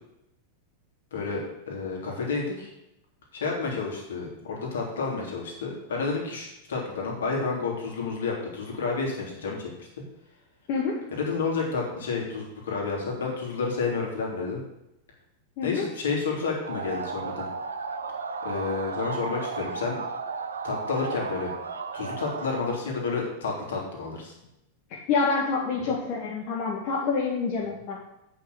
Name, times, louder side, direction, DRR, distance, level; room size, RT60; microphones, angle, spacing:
voice 1, 1.1-2.7 3.3-9.9 11.1-14.6 15.6-17.5 18.4-20.0 20.6-21.5 21.9-24.3, left 4 dB, 65° left, -1 dB, 3.5 m, -30 dB
voice 2, 15.6-15.9 24.9-28.0, left 4 dB, 45° left, -3 dB, 2.0 m, -27 dB
sound 1, 16.6-22.8, right 5 dB, 70° right, 0.8 m, -34 dB
8.7 x 6.3 x 8.0 m, 0.86 s
figure-of-eight pair, 90°, 0 cm